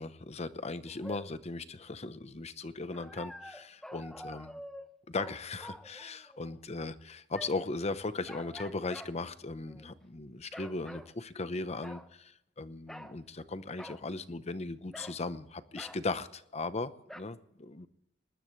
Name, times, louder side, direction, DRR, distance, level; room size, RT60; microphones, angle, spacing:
voice 1, 0.0-4.6 5.1-17.9, left 3 dB, 35° left, 0.9 m, -38 dB
sound 1, 0.9-1.3 2.9-6.6 7.3-7.7 8.3-9.1 9.7-10.0 10.5-11.1 11.8-12.1 12.9-13.2 13.8-14.0 14.9-15.2 15.7-16.0 17.1-17.2, equal, 5° left, 0.8 m, -47 dB
21.5 x 20.0 x 3.2 m
head